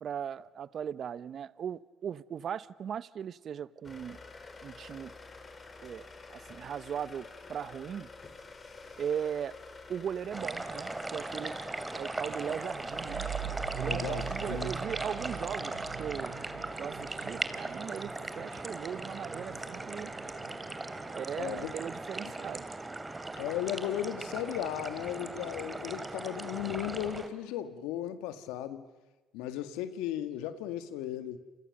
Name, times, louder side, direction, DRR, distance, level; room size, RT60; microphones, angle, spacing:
voice 1, 0.0-4.2 4.6-5.1 5.8-8.1 9.0-9.6 9.9-11.6 11.9-13.3 13.7-16.4 16.8-20.1 21.1-22.7, right 8 dB, 55° right, 0.8 m, -38 dB
sound 1, 3.8-14.8, left 3 dB, 35° left, 4.6 m, -49 dB
sound 2, 10.3-27.3, right 2 dB, 20° right, 2.6 m, -38 dB
sound 3, 12.8-22.2, right 9 dB, 80° right, 5.0 m, -43 dB
voice 2, 13.8-14.7 21.4-21.7 23.4-28.9 29.3-31.4, left 11 dB, 80° left, 1.9 m, -36 dB
28.5 x 28.0 x 6.7 m
hypercardioid pair, 60°, 0 cm